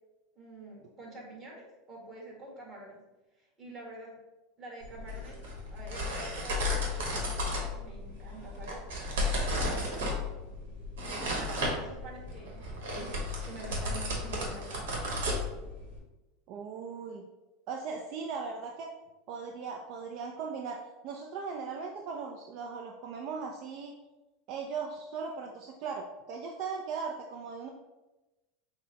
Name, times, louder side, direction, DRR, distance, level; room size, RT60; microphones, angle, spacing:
voice 1, 0.3-3.0 3.4-4.2 4.6-5.4 5.7-8.8 9.5-10.1 11.0-14.8, right 2 dB, 30° right, -3 dB, 1.5 m, -47 dB
sound 1, 4.8-16.0, left 1 dB, 80° right, 1.1 m, -34 dB
voice 2, 16.5-17.2 17.7-18.9 19.3-23.9 24.5-27.7, right 5 dB, 55° right, 2 dB, 0.4 m, -38 dB
5.8 x 2.1 x 2.9 m, 1.1 s
supercardioid pair, 115°, 0 cm